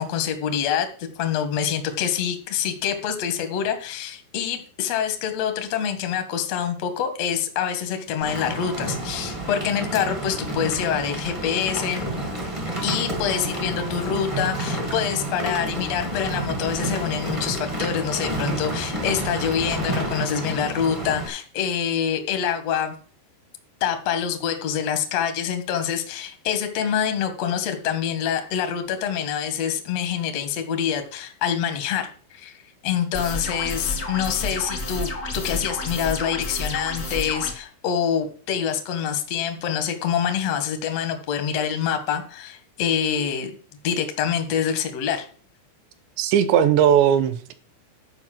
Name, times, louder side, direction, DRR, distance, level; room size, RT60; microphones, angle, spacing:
voice 1, 0.0-12.1 12.8-22.9 23.8-32.6 32.8-43.5 43.8-45.3, left 8 dB, 85° left, 7 dB, 1.4 m, -26 dB
Rain, 8.2-21.3, right 1 dB, 50° right, 0.3 m, -29 dB
sound 1, 33.1-37.5, left 2 dB, 65° left, 0.9 m, -30 dB
voice 2, 46.2-47.5, right 9 dB, 80° right, 11 dB, 2.7 m, -18 dB
12.0 x 4.9 x 7.6 m, 0.42 s
omnidirectional pair, 5.5 m